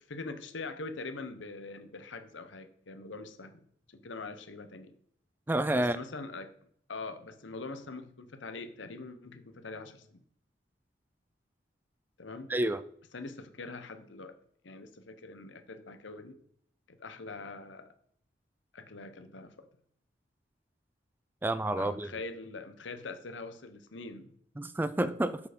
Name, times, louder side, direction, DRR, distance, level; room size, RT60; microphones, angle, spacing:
voice 1, 0.0-3.6 3.9-4.9 5.8-6.5 6.9-10.2 12.2-12.5 13.1-14.3 14.6-16.4 16.9-17.9 18.7-19.7 21.8-24.3, left 3 dB, 90° left, 1.0 m, -43 dB
voice 2, 5.5-6.0 12.5-12.8 21.4-22.1 24.6-25.4, right 1 dB, 10° right, 0.3 m, -29 dB
7.1 x 6.6 x 5.1 m
head